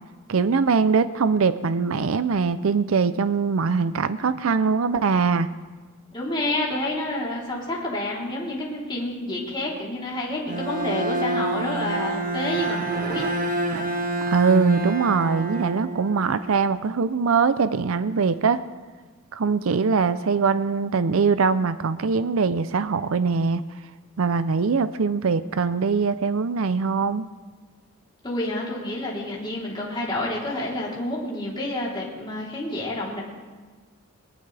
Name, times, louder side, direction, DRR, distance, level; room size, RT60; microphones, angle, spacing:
voice 1, 0.3-5.5 14.3-18.6 19.3-23.6 24.2-27.3, right 5 dB, 70° right, 13 dB, 0.5 m, -22 dB
voice 2, 6.1-13.2 28.2-33.2, left 1 dB, 20° left, -5 dB, 3.5 m, -29 dB
Bowed string instrument, 10.5-16.4, right 2 dB, 40° right, 1.4 m, -27 dB
21.0 x 18.5 x 3.4 m, 1.4 s
head